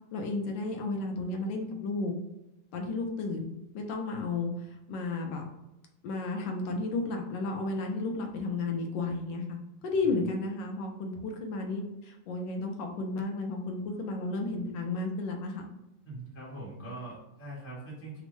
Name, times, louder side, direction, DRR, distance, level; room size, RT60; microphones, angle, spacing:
voice 1, 0.1-2.1 2.7-4.5 4.9-5.5 6.0-15.6, left 3 dB, 80° left, 2 dB, 1.3 m, -33 dB
voice 2, 16.0-18.2, right 2 dB, 10° left, -7 dB, 0.6 m, -42 dB
3.5 x 2.0 x 3.0 m, 0.91 s
omnidirectional pair, 2.0 m